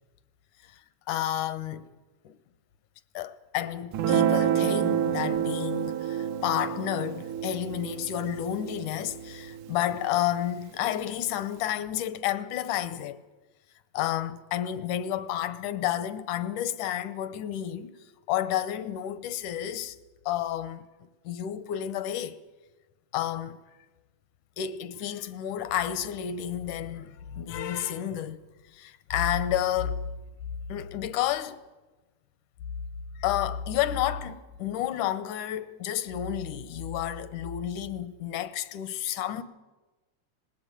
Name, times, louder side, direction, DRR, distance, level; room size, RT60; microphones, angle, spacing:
voice 1, 1.1-1.9 2.2-2.4 3.1-13.2 13.9-17.9 18.3-20.0 20.3-22.4 23.1-23.6 24.6-28.4 28.7-30.1 30.7-31.6 33.2-39.4, left 11 dB, 85° left, 2.4 m, -31 dB
Guitar, 3.9-10.5, right 10 dB, 80° right, 2.5 m, -29 dB
20.0 x 17.0 x 8.9 m
omnidirectional pair, 3.5 m